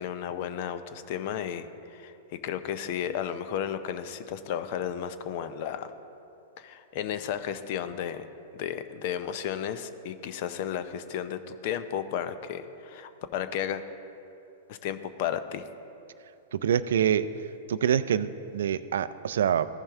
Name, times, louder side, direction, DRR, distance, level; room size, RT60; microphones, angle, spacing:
voice 1, 0.0-5.9 6.6-8.3 8.5-13.8 14.7-15.6, left 9 dB, 55° left, 11 dB, 0.6 m, -33 dB
voice 2, 16.5-17.3 17.7-19.7, right 9 dB, 75° right, 14 dB, 0.3 m, -25 dB
15.0 x 5.5 x 3.5 m, 2.8 s
hypercardioid pair, 115°, 0 cm